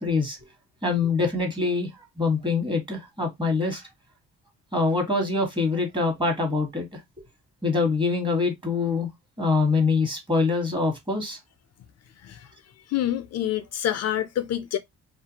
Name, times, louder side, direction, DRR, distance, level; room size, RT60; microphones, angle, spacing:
voice 1, 0.0-0.4 0.8-1.9 2.2-3.8 4.7-7.0 7.6-9.1 9.4-11.4, left 4 dB, 15° right, 1.3 m, -24 dB
voice 2, 12.9-14.8, left 11 dB, 60° left, 0.4 m, -27 dB
2.5 x 2.3 x 2.7 m
cardioid pair, 90°, 30 cm